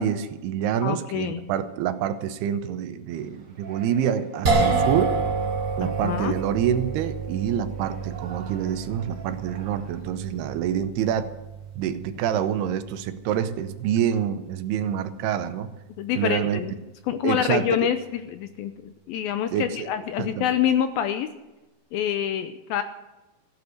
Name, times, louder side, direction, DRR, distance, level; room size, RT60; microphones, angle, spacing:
voice 1, 0.0-5.2 5.8-11.3 11.8-15.7 16.2-16.6 17.2-17.9 19.5-19.9 20.2-20.5, right 9 dB, 85° right, 10 dB, 2.8 m, -27 dB
voice 2, 0.8-1.5 5.8-6.4 16.0-16.7 17.1-21.3 21.9-22.8, left 10 dB, 80° left, 10 dB, 2.3 m, -26 dB
Yell, 3.1-10.8, right 5 dB, 50° right, 1.2 m, -47 dB
sound 1, 4.4-16.8, right 4 dB, 30° right, 1.8 m, -30 dB
16.0 x 9.6 x 7.9 m, 1.0 s
omnidirectional pair, 4.8 m